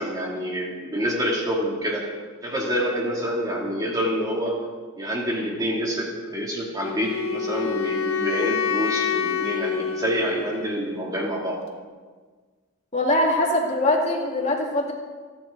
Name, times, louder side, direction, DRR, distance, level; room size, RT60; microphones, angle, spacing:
voice 1, 0.0-2.0 2.4-4.6 5.0-11.6, equal, 15° right, -3 dB, 2.9 m, -27 dB
Wind instrument woodwind instrument, 6.8-10.9, left 6 dB, 85° left, 1.3 m, -27 dB
voice 2, 12.9-14.9, left 1 dB, 30° left, 0 dB, 2.4 m, -22 dB
29.0 x 9.8 x 4.0 m, 1.5 s
head